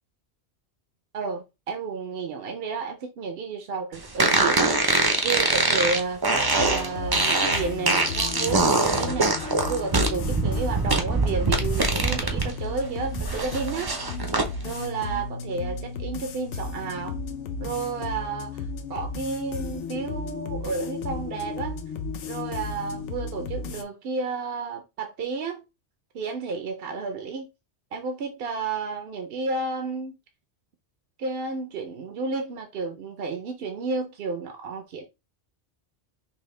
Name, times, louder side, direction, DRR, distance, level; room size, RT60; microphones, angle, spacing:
voice 1, 1.1-6.2 6.6-13.9 14.6-17.2 17.6-21.8 22.2-25.6 26.1-27.5 27.9-30.1 31.2-35.0, right 4 dB, 65° right, 0.8 m, -31 dB
sound 1, 4.2-12.5 12.8-14.5, right 3 dB, 30° right, 0.5 m, -23 dB
sound 2, 6.3-23.8, left 4 dB, 90° left, 0.9 m, -34 dB
5.4 x 2.2 x 3.2 m
omnidirectional pair, 1.2 m